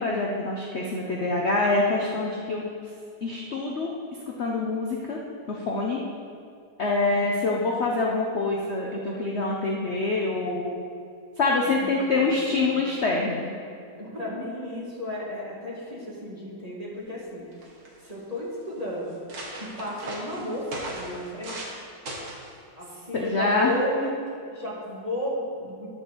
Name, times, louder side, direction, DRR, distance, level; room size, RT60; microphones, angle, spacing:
voice 1, 0.0-2.7 3.2-3.9 4.4-5.2 5.5-6.0 6.8-10.8 11.4-13.5 23.1-23.7, left 3 dB, 50° left, -1 dB, 0.9 m, -25 dB
voice 2, 11.6-12.8 14.0-17.5 18.0-19.2 19.6-21.8 22.8-24.1 24.5-25.9, left 1 dB, 20° right, -6 dB, 1.8 m, -33 dB
sound 1, 17.2-17.3 17.5-18.1 18.7-18.8 19.1-21.8 22.1-22.5 23.2-23.5, right 1 dB, 60° right, 2.0 m, -38 dB
10.5 x 4.5 x 7.0 m, 2.3 s
omnidirectional pair, 1.9 m